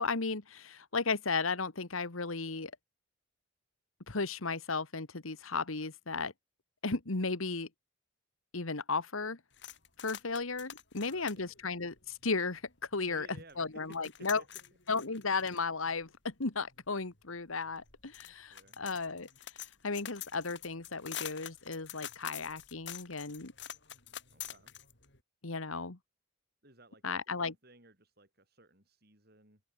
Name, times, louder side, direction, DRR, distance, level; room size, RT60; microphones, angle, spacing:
voice 1, 0.0-2.7 4.1-6.3 6.8-7.7 8.5-9.4 10.0-12.6 12.9-13.3 13.6-14.4 14.9-19.3 19.8-23.5 25.4-26.0 27.0-27.5, left 4 dB, 80° left, 1.7 m, -35 dB
sound 1, 9.5-12.7 13.2-13.3 13.5-25.2, left 10 dB, 55° left, 6.3 m, -47 dB
voice 2, 10.9-11.5 13.1-14.5 16.1-16.2 18.2-18.8 24.3-24.7 26.6-29.6, right 2 dB, 50° right, 7.8 m, -58 dB
open air
head